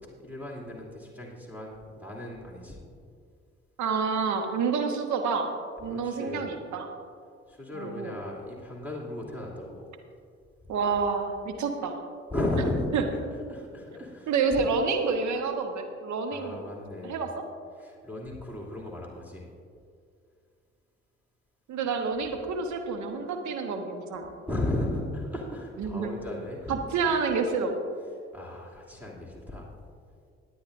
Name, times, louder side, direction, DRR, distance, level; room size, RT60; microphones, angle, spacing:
voice 1, 0.2-2.8 5.9-6.6 7.5-9.9 12.3-12.9 13.5-14.6 16.3-17.3 17.8-19.5 24.4-26.8 28.3-29.7, left 1 dB, 5° right, -3 dB, 2.8 m, -35 dB
voice 2, 3.8-5.5 5.8-6.9 7.7-8.1 10.7-12.0 12.9-13.0 14.3-16.7 17.0-17.3 21.7-24.3 25.8-26.1 26.7-27.8, right 5 dB, 55° right, 5 dB, 1.3 m, -28 dB
20.5 x 8.4 x 2.6 m, 2.3 s
figure-of-eight pair, 40°, 35 cm